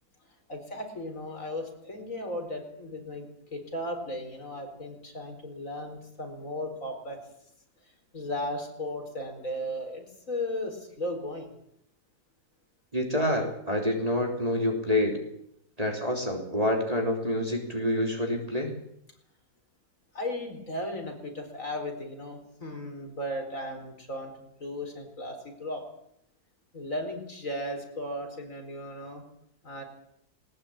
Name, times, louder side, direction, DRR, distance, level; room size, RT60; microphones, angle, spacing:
voice 1, 0.5-7.2 8.1-11.5 20.1-24.3 24.6-25.8 26.7-29.2 29.6-29.8, left 1 dB, 45° left, 3 dB, 5.0 m, -36 dB
voice 2, 12.9-15.2 15.8-18.7, left 1 dB, 20° right, 1 dB, 3.4 m, -27 dB
20.0 x 20.0 x 8.7 m, 0.72 s
omnidirectional pair, 1.9 m